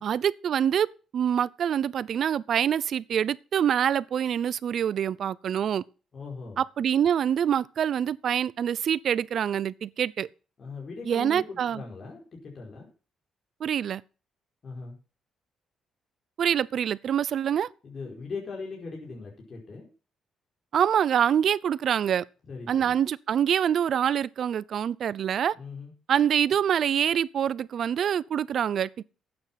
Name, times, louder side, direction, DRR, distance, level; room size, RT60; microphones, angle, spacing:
voice 1, 0.0-5.8 6.6-10.3 11.1-11.8 13.6-14.0 16.4-17.7 20.7-22.2 22.7-25.6 26.1-29.0, right 9 dB, 60° right, 0.6 m, -25 dB
voice 2, 6.1-6.6 10.6-12.9 14.6-15.0 17.8-19.9 22.5-23.0 25.5-25.9, left 4 dB, 45° left, 4.9 m, -39 dB
12.0 x 8.9 x 5.9 m
cardioid pair, 90°, 0 cm